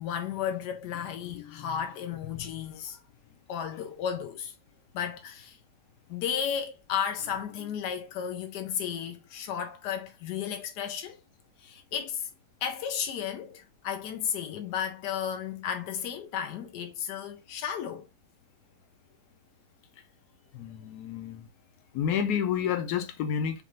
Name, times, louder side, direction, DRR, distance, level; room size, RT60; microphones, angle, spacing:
voice 1, 0.0-3.0 3.5-4.5 4.9-5.6 6.1-11.2 11.6-12.3 12.6-18.1, left 8 dB, 90° left, 1.2 m, -33 dB
voice 2, 1.3-1.8 2.2-2.5 20.5-21.5 21.9-23.6, left 8 dB, 70° left, 1.3 m, -30 dB
5.3 x 2.5 x 3.1 m
omnidirectional pair, 1.7 m